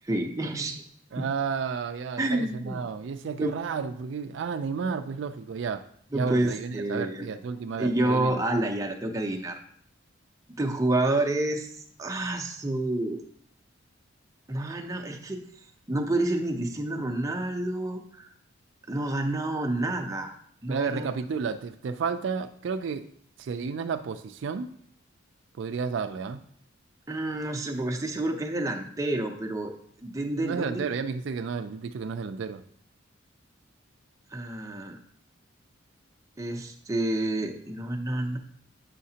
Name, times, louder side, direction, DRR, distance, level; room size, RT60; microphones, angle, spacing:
voice 1, 0.0-0.8 1.2-1.3 2.2-2.8 3.4-3.5 6.1-7.3 7.8-9.6 10.6-13.2 14.5-15.4 15.9-18.3 18.9-20.3 20.6-21.1 27.1-29.7 30.0-30.8 34.3-35.0 36.4-38.4, right 1 dB, 15° right, 3 dB, 0.5 m, -29 dB
voice 2, 1.1-5.8 6.1-8.4 20.7-23.1 23.4-24.7 25.6-26.4 30.4-32.6, right 5 dB, 65° right, 8 dB, 0.3 m, -32 dB
7.4 x 5.7 x 2.8 m, 0.62 s
head